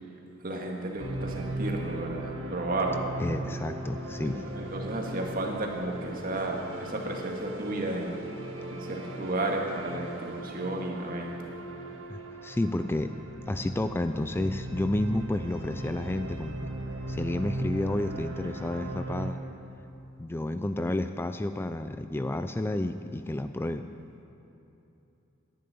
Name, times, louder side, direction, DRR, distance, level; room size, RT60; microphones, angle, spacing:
voice 1, 0.4-3.1 4.2-8.2 8.7-11.4, right 2 dB, 50° right, 1 dB, 1.9 m, -33 dB
sound 1, 1.0-19.3, right 1 dB, 85° right, 1.6 m, -38 dB
voice 2, 3.2-4.4 12.1-13.1 13.5-16.7 17.1-19.4 20.2-23.9, left 1 dB, 10° left, 9 dB, 0.3 m, -31 dB
10.5 x 10.5 x 9.3 m, 3.0 s
head